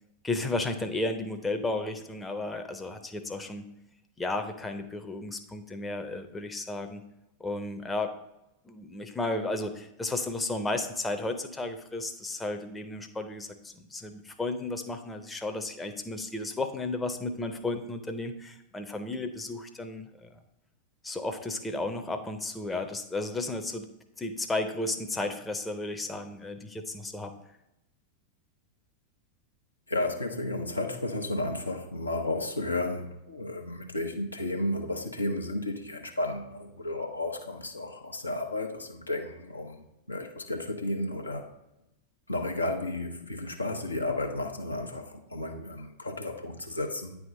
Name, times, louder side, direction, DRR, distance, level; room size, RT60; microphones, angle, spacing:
voice 1, 0.2-3.7 4.2-7.0 7.4-8.1 8.6-20.4 21.0-23.9 24.2-27.4, left 2 dB, 10° left, 6 dB, 0.7 m, -33 dB
voice 2, 29.9-39.8 40.1-41.5 42.3-47.2, left 2 dB, 85° left, 3 dB, 0.9 m, -33 dB
9.3 x 3.5 x 5.2 m, 0.88 s
figure-of-eight pair, 90°, 0 cm